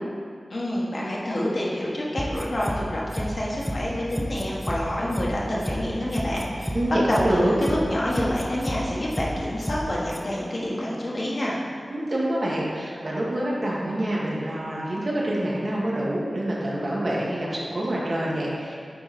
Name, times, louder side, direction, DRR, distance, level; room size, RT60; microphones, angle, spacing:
voice 1, 0.5-6.8 7.1-11.6, left 1 dB, 60° left, -5 dB, 1.5 m, -27 dB
sound 1, 2.2-2.8 3.1-3.3 3.6-3.8 4.1-4.8 5.1-5.3 5.6-5.8 6.1-6.8 7.1-7.3 7.6-7.8 8.1-8.8 9.1-9.3 9.6-9.8 10.1-10.2, equal, 5° left, 0.7 m, -30 dB
voice 2, 6.7-7.5 11.9-18.7, right 1 dB, 60° right, -5 dB, 1.6 m, -26 dB
9.2 x 4.0 x 4.2 m, 2.1 s
wide cardioid pair, 65°, 0 cm